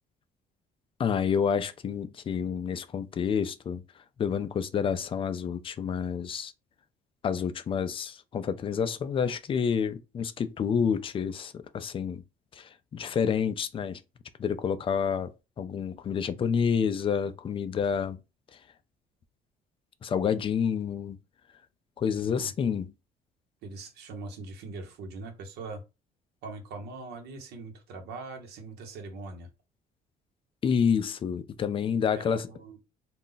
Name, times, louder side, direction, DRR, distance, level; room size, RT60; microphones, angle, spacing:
voice 1, 1.0-3.8 4.2-6.5 7.2-12.2 12.5-14.0 14.4-18.2 20.0-21.2 22.0-22.9 30.6-32.5, left 7 dB, 30° left, 0.3 m, -29 dB
voice 2, 22.2-22.8 23.6-25.8 26.4-29.5 32.1-32.8, right 3 dB, 75° right, 0.9 m, -42 dB
2.3 x 2.0 x 3.8 m
cardioid pair, 110°, 17 cm